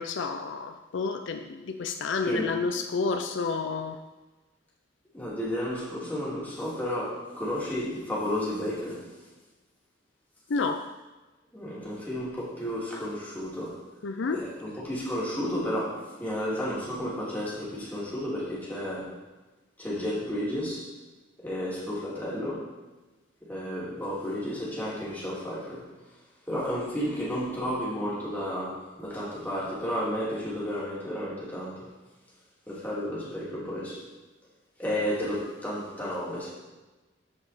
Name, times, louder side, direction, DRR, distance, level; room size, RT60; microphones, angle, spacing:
voice 1, 0.0-4.0 10.5-10.9 14.0-14.5, left 4 dB, 65° left, 7 dB, 0.4 m, -30 dB
voice 2, 2.3-2.6 5.1-9.1 11.5-13.8 14.3-19.1 19.8-20.9 21.4-22.6 23.4-25.8 26.5-31.9 32.7-34.0 34.8-36.5, equal, 10° left, -7 dB, 2.8 m, -32 dB
14.0 x 5.0 x 4.2 m, 1.2 s
head